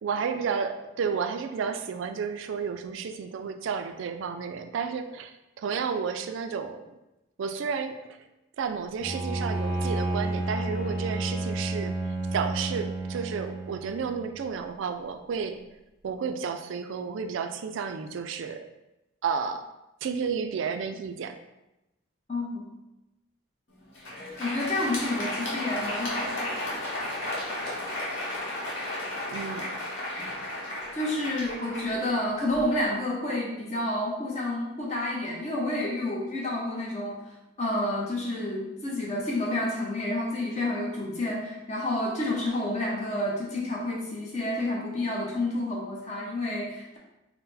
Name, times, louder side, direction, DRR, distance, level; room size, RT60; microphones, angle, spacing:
voice 1, 0.0-5.3 5.6-6.8 7.4-8.2 8.6-15.6 16.0-18.7 19.2-19.6 20.0-21.3 29.3-29.7, right 6 dB, 75° right, 8 dB, 0.3 m, -32 dB
Bowed string instrument, 9.0-14.4, right 2 dB, 10° right, 0.9 m, -31 dB
voice 2, 22.3-22.6 24.4-26.5 30.9-47.0, left 1 dB, 35° left, -3 dB, 0.7 m, -29 dB
Crowd, 23.8-32.8, left 1 dB, 65° left, 1.1 m, -34 dB
3.8 x 2.1 x 4.1 m, 0.96 s
head